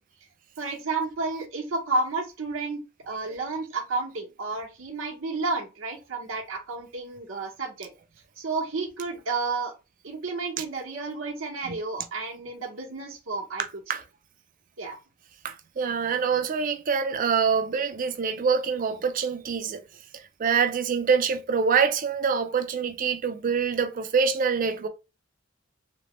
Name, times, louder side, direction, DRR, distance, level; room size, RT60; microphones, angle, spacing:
voice 1, 0.6-2.8 3.1-7.9 8.4-9.7 10.0-13.6 14.8-15.0, right 3 dB, 75° right, 0.9 m, -31 dB
voice 2, 15.4-19.8 20.1-24.9, right 6 dB, 40° right, 0.4 m, -25 dB
3.0 x 2.1 x 3.0 m
head